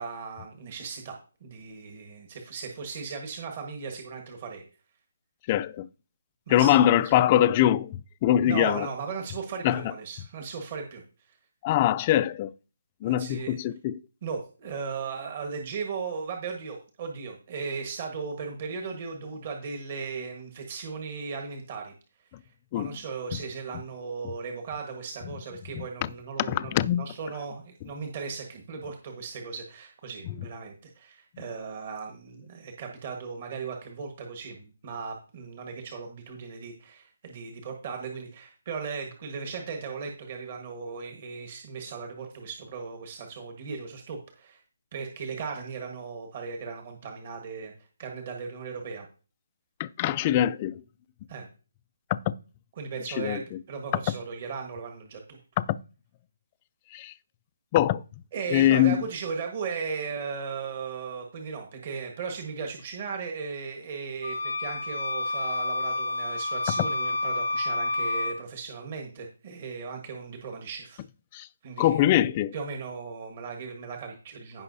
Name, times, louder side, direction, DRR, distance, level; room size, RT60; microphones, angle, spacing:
voice 1, 0.0-4.6 6.5-7.0 8.3-11.0 11.3-11.4 13.0-13.6 14.2-21.9 22.7-44.6 44.9-47.7 48.0-49.1 51.3-51.5 52.8-55.4 58.3-71.0 71.6-72.2 72.5-74.6, right 5 dB, 35° right, 1.4 m, -37 dB
voice 2, 5.5-5.9 6.5-8.9 9.6-9.8 11.6-12.5 13.0-14.0 22.7-22.9 25.8-25.9 26.4-27.1 49.8-50.8 52.1-52.3 53.2-53.6 55.6-55.8 56.9-57.1 57.7-58.0 58.5-59.0 71.3-71.5 71.8-72.5, left 12 dB, 20° left, 0.3 m, -23 dB
sound 1, 64.2-68.4, left 2 dB, 65° left, 0.7 m, -29 dB
16.0 x 5.6 x 2.7 m
hypercardioid pair, 170°, 0 cm